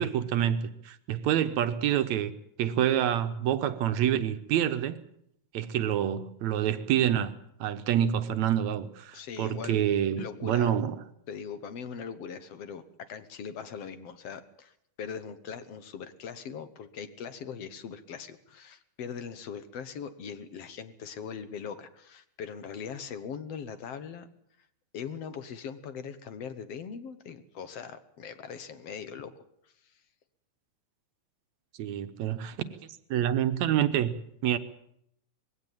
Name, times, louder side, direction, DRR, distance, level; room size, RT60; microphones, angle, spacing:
voice 1, 0.0-2.3 2.6-5.0 5.5-7.3 7.6-11.0 31.8-32.7 33.1-34.1 34.4-34.6, right 10 dB, 75° right, 2.2 m, -27 dB
voice 2, 9.1-9.8 10.2-10.7 11.3-12.8 13.1-24.3 24.9-29.4, left 7 dB, 60° left, 2.0 m, -40 dB
21.0 x 16.5 x 9.0 m
omnidirectional pair, 3.4 m